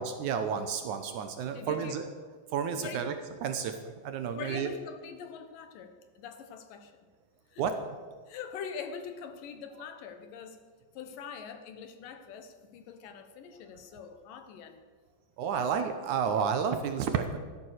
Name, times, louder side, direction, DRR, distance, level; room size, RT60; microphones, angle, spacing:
voice 1, 0.0-2.1 2.5-3.1 3.4-4.7 7.6-7.8 15.4-17.4, right 7 dB, 70° right, 7 dB, 2.1 m, -31 dB
voice 2, 1.5-2.0 2.7-3.0 4.3-6.9 7.5-7.6 8.3-10.6 10.9-14.8, left 6 dB, 75° left, 8 dB, 2.7 m, -43 dB
14.0 x 12.0 x 6.4 m, 1.5 s
omnidirectional pair, 4.1 m